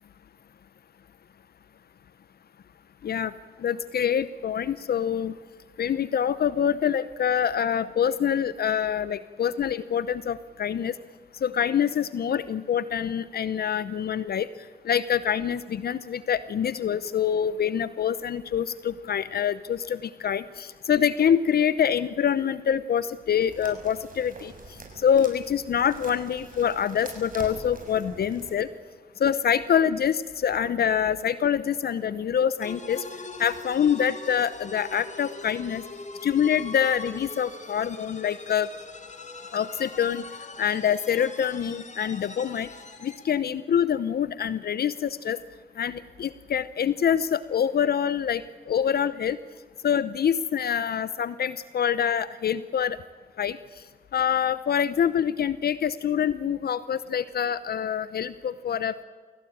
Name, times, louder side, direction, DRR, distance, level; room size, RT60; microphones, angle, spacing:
voice 1, 3.6-5.3 5.8-10.9 11.4-14.5 14.8-24.5 25.0-28.7 29.2-33.0 33.4-35.8 36.2-38.7 39.5-40.2 40.6-42.7 43.0-45.4 45.8-49.4 49.8-53.0 53.4-53.6 54.1-59.0, left 8 dB, 70° left, 16 dB, 0.8 m, -25 dB
sound 1, 23.4-28.5, right 4 dB, 55° right, 6.4 m, -45 dB
sound 2, 32.6-43.4, left 3 dB, 45° left, 2.9 m, -42 dB
24.5 x 17.0 x 8.7 m, 1.6 s
supercardioid pair, 50°, 17 cm